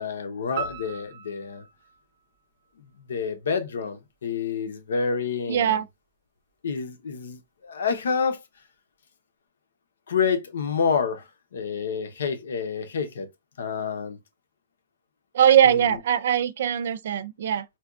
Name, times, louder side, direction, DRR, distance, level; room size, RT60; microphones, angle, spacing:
voice 1, 0.0-1.6 2.8-5.8 6.6-8.4 10.1-13.3 13.6-14.2 15.6-16.0, left 6 dB, 85° left, 0.7 m, -28 dB
sound 1, 0.6-3.0, right 7 dB, 30° right, 0.9 m, -38 dB
voice 2, 5.5-5.8 15.3-17.6, right 9 dB, 55° right, 0.3 m, -21 dB
4.2 x 2.3 x 2.3 m
hypercardioid pair, 180°, 0 cm